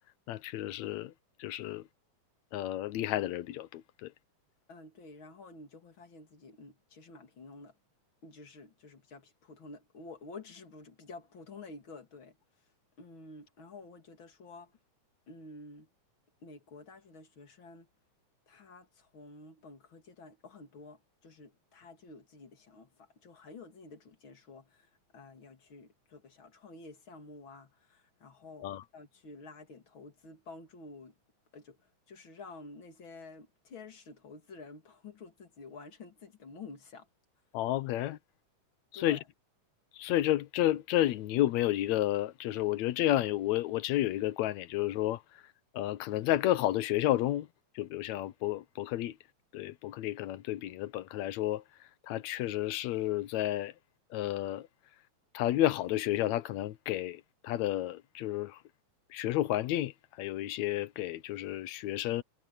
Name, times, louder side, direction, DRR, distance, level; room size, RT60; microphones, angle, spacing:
voice 1, 0.3-1.1 1.4-1.8 2.5-4.1 28.6-28.8 37.5-38.2 38.9-39.2 40.0-45.2 45.7-47.5 47.8-49.2 49.5-51.6 52.1-53.7 54.1-54.7 55.3-58.6 59.1-59.9 60.2-62.2, left 14 dB, 75° left, 2.0 m, -31 dB
voice 2, 4.7-7.8 8.2-12.4 13.0-14.7 15.3-15.9 16.4-17.9 18.5-31.2 31.5-37.1 38.9-39.2, left 3 dB, 40° left, 3.1 m, -50 dB
omnidirectional pair, 3.4 m